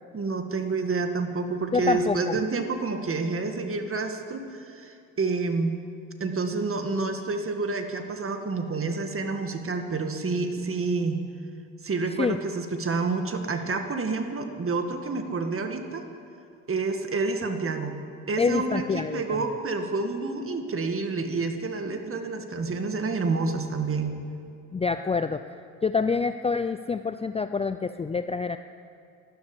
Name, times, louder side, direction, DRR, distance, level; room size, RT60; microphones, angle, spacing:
voice 1, 0.1-5.8 6.2-11.2 11.8-16.0 16.7-17.9 18.3-24.1, right 3 dB, 35° right, 6 dB, 2.0 m, -28 dB
voice 2, 1.7-2.4 12.2-12.4 18.4-19.4 24.7-25.4 25.8-28.6, left 4 dB, 15° left, 10 dB, 0.5 m, -26 dB
12.5 x 12.5 x 8.5 m, 2.5 s
hypercardioid pair, 65°, 38 cm